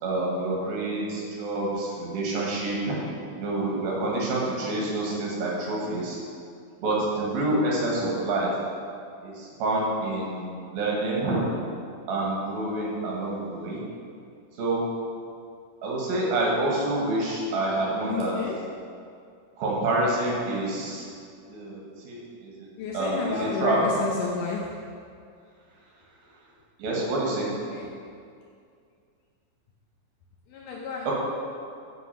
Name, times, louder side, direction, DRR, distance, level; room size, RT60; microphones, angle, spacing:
voice 1, 0.0-3.0 3.3-6.2 6.8-8.5 9.2-11.5 12.1-13.9 14.6-14.8 15.8-18.3 19.6-21.1 21.5-22.7 22.9-23.8 26.8-27.5, right 2 dB, 75° right, -3 dB, 3.2 m, -27 dB
voice 2, 18.1-18.6 22.8-24.8 27.7-27.9 30.5-31.1, left 5 dB, 75° left, -3 dB, 2.0 m, -31 dB
8.2 x 5.2 x 5.6 m, 2.3 s
omnidirectional pair, 4.4 m